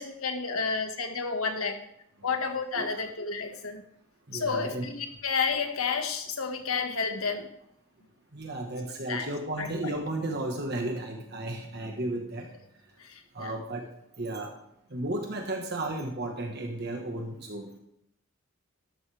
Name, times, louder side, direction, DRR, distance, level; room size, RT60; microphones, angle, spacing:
voice 1, 0.0-1.8 2.2-3.8 4.3-7.5 9.1-9.3 9.6-9.7 13.0-13.6, left 5 dB, 80° left, 5 dB, 1.7 m, -31 dB
voice 2, 2.7-3.1 4.3-4.8 8.3-12.5 13.3-13.8 14.2-14.5 14.9-17.7, right 1 dB, 50° right, 2 dB, 1.5 m, -34 dB
13.5 x 12.0 x 3.5 m, 0.75 s
head